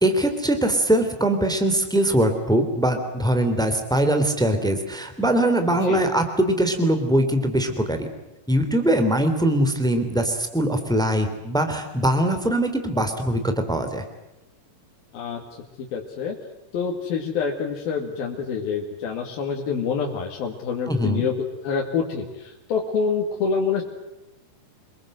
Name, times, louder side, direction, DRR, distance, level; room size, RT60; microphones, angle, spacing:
voice 1, 0.0-8.1 8.5-14.0 20.9-21.2, right 1 dB, ahead, 7 dB, 2.6 m, -22 dB
voice 2, 15.1-15.4 15.8-16.4 16.7-21.3 21.6-23.8, left 5 dB, 65° left, -1 dB, 4.1 m, -26 dB
28.0 x 22.5 x 7.9 m, 0.98 s
omnidirectional pair, 4.6 m